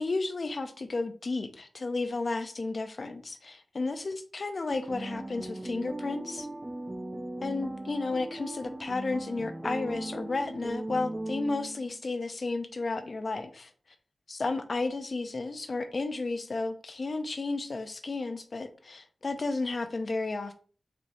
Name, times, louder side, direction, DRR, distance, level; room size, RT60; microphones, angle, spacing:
voice 1, 0.0-6.5 7.4-13.7 14.3-20.5, left 3 dB, 55° left, 8 dB, 0.5 m, -33 dB
sound 1, 4.7-12.0, right 1 dB, 20° right, 0.4 m, -38 dB
4.3 x 3.1 x 2.6 m, 0.41 s
wide cardioid pair, 110°, 0 cm